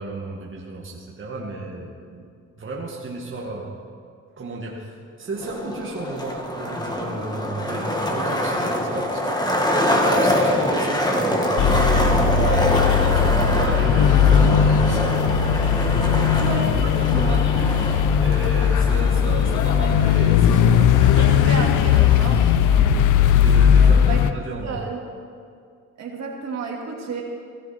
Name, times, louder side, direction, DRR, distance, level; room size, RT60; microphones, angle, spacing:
voice 1, 0.0-2.3 2.6-3.8 4.4-9.6 9.9-12.6 12.8-17.7 18.2-21.4 22.4-22.6 23.4-24.8, right 2 dB, 40° right, -3 dB, 2.1 m, -33 dB
Skateboard, 5.4-22.4, left 1 dB, 15° left, 1.9 m, -25 dB
sound 1, 11.6-24.3, left 8 dB, 85° left, 0.7 m, -18 dB
voice 2, 12.4-12.8 13.2-13.5 16.4-17.4 21.1-22.9 23.7-24.2 24.6-25.0 26.0-27.2, right 4 dB, 60° right, -1 dB, 2.7 m, -32 dB
17.0 x 13.0 x 4.4 m, 2.3 s
cardioid pair, 90°, 30 cm